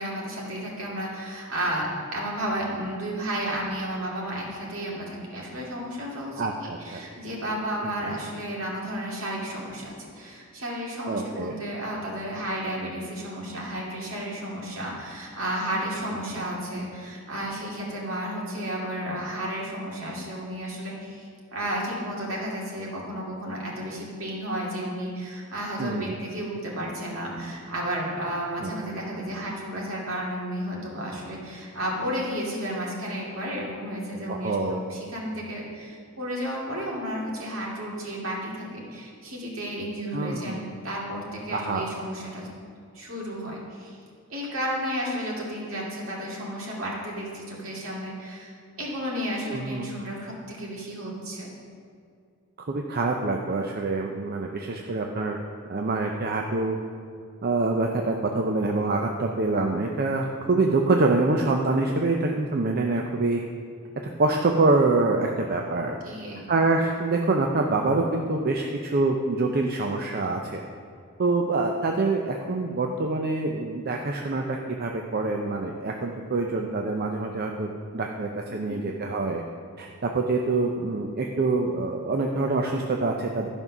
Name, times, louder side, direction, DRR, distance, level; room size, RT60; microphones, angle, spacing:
voice 1, 0.0-42.5 42.9-44.0 44.3-51.5 66.0-66.5 78.5-78.8, equal, 70° right, -3 dB, 2.4 m, -32 dB
voice 2, 6.4-7.0 7.8-8.2 11.1-11.5 16.3-16.4 25.8-26.1 28.6-28.7 34.3-34.8 40.1-40.6 41.5-41.9 49.5-49.9 52.6-55.4 55.7-56.8 57.4-63.4 64.2-66.0 66.5-70.6 71.2-79.4 79.8-83.5, right 3 dB, 45° right, 2 dB, 0.6 m, -25 dB
12.0 x 5.4 x 6.0 m, 2.3 s
head